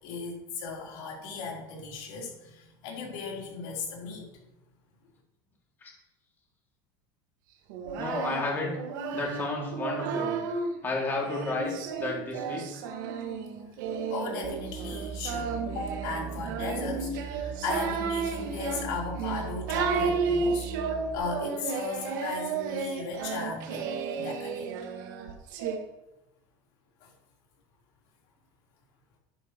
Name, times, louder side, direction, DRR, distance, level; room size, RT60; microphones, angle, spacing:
voice 1, 0.0-4.3 14.1-24.7 27.0-27.1, left 4 dB, 60° left, -2 dB, 3.5 m, -37 dB
Singing, 7.7-10.7 11.3-25.8, right 5 dB, 85° right, 1.6 m, -33 dB
voice 2, 8.0-8.8 9.1-10.4 10.8-12.7, left 2 dB, 20° left, -2 dB, 2.3 m, -32 dB
Musical instrument, 14.4-21.2, right 6 dB, 40° right, 1.1 m, -39 dB
11.5 x 10.5 x 3.0 m, 0.94 s
cardioid pair, 160°, 10 cm